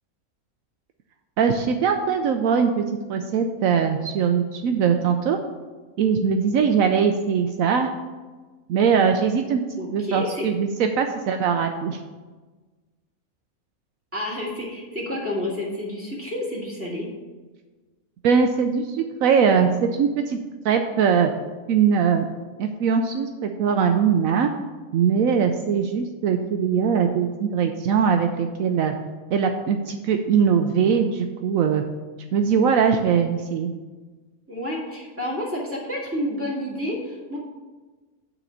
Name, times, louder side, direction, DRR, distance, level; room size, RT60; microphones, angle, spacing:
voice 1, 1.4-2.8 3.1-5.4 6.0-7.9 8.7-12.0 18.2-20.4 20.6-21.3 21.7-22.2 22.6-24.5 24.9-28.9 29.3-31.8 32.3-33.7, right 6 dB, 75° right, 5 dB, 1.0 m, -21 dB
voice 2, 9.8-10.4 14.1-17.1 34.5-37.4, left 1 dB, 10° right, -6 dB, 2.3 m, -29 dB
9.0 x 3.9 x 7.0 m, 1.3 s
omnidirectional pair, 1.5 m